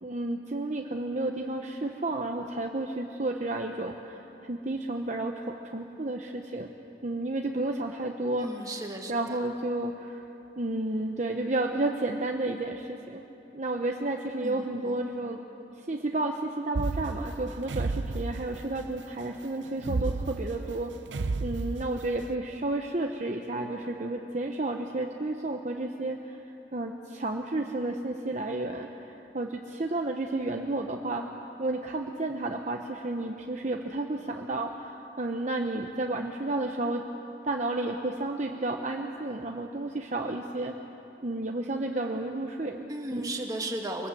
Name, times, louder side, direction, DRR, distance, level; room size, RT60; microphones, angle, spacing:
voice 1, 0.0-6.7 7.0-8.7 9.1-10.2 10.6-13.2 13.5-15.4 15.8-20.9 21.4-26.4 26.7-31.3 31.6-37.0 37.4-40.7 41.2-43.4, right 2 dB, 40° right, 2 dB, 1.0 m, -32 dB
voice 2, 8.4-9.4 14.4-15.0 42.9-44.1, right 1 dB, 20° right, 1 dB, 2.2 m, -35 dB
sound 1, 16.7-18.9 19.8-22.2, right 3 dB, 90° right, 0.6 m, -32 dB
24.5 x 20.0 x 7.9 m, 3.0 s
head